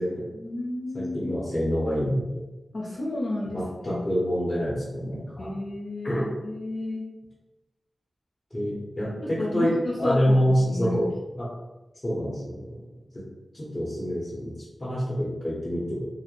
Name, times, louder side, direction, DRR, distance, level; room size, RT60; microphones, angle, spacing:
voice 1, 0.3-1.4 2.7-4.0 5.4-7.1 9.0-11.1, left 1 dB, 60° left, -5 dB, 0.5 m, -32 dB
voice 2, 0.9-2.4 3.5-5.5 6.0-6.3 8.5-9.7 10.0-11.1 11.4-11.5 12.0-12.8 13.1-13.2 13.5-14.5 14.8-16.1, equal, 25° left, -8 dB, 0.8 m, -27 dB
2.4 x 2.0 x 2.9 m, 1.1 s
wide cardioid pair, 80°, 0 cm